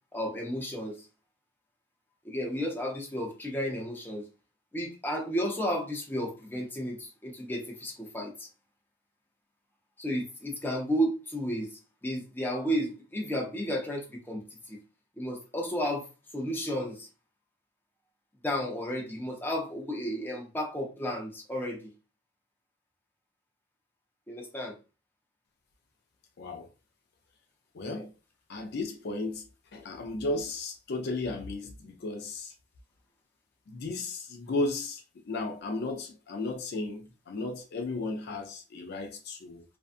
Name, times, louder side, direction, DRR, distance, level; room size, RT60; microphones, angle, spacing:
voice 1, 0.1-1.1 2.2-4.3 4.7-8.5 10.0-14.4 14.7-14.8 15.2-16.1 16.3-17.1 18.4-21.9 24.3-24.8 27.9-28.0, equal, 10° left, 0.6 m, -33 dB
voice 2, 26.4-26.7 27.7-28.1 28.5-29.4 29.7-32.5 33.7-39.6, left 2 dB, 55° left, 0.4 m, -34 dB
2.6 x 2.2 x 2.4 m
head